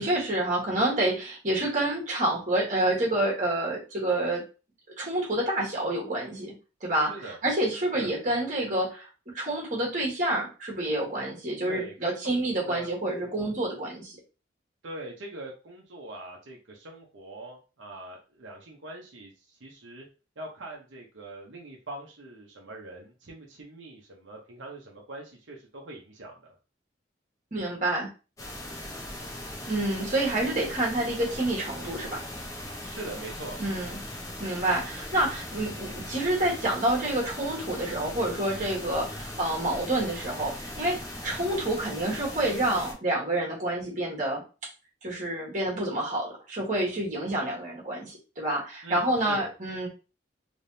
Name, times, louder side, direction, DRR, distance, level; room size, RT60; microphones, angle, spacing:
voice 1, 0.0-4.4 5.0-6.5 6.8-9.1 9.3-14.1 27.5-28.1 29.6-32.2 33.6-34.0 34.4-41.0 41.2-44.4 45.0-49.9, right 1 dB, 40° right, -2 dB, 1.4 m, -28 dB
voice 2, 11.6-12.9 14.8-20.1 20.4-26.5 32.8-33.6 48.8-49.5, right 2 dB, 85° right, -1 dB, 0.9 m, -42 dB
sound 1, 28.4-42.9, left 1 dB, 20° left, 0.8 m, -39 dB
3.4 x 3.2 x 2.7 m, 0.32 s
head